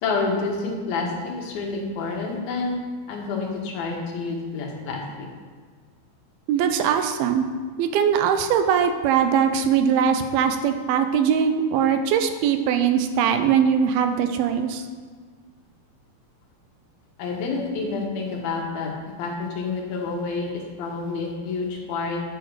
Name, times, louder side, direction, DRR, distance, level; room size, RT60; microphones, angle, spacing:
voice 1, 0.0-1.1 1.4-2.7 3.1-5.0 17.2-18.9 19.2-22.2, left 4 dB, 75° left, 0 dB, 3.2 m, -28 dB
voice 2, 6.5-7.5 7.8-14.8, right 7 dB, 90° right, 7 dB, 2.6 m, -21 dB
10.5 x 6.5 x 4.9 m, 1.5 s
omnidirectional pair, 4.3 m